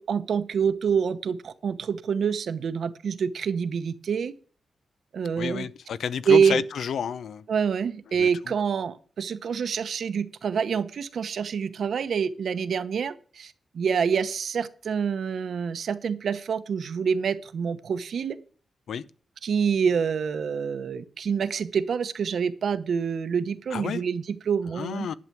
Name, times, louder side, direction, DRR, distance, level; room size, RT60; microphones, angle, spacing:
voice 1, 0.0-4.3 5.1-5.7 6.3-6.6 7.5-18.4 19.4-25.1, right 6 dB, 60° right, 0.8 m, -26 dB
voice 2, 5.4-7.5 8.1-8.5 18.9-19.0 23.7-24.0 24.7-25.1, left 7 dB, 90° left, 0.6 m, -31 dB
11.0 x 7.5 x 5.9 m
wide cardioid pair, 175°, 0 cm